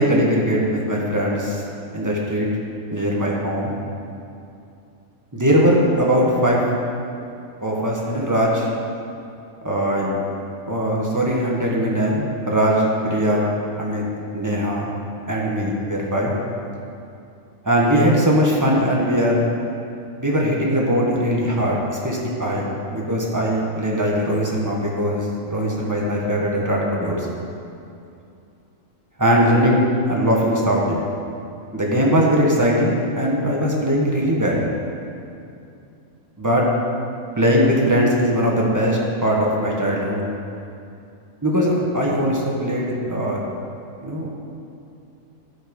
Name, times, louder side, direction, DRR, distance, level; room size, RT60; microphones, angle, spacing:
voice 1, 0.0-1.6 1.9-2.5 2.9-3.8 5.3-6.6 7.6-8.7 9.6-10.2 10.7-14.0 14.3-14.9 15.3-16.3 17.6-19.4 20.2-27.4 29.2-29.8 30.1-31.1 31.7-34.6 36.4-36.7 37.4-40.2 41.4-43.5 44.0-44.3, equal, 15° right, -3 dB, 1.4 m, -20 dB
13.0 x 6.2 x 5.4 m, 2.6 s
omnidirectional pair, 1.5 m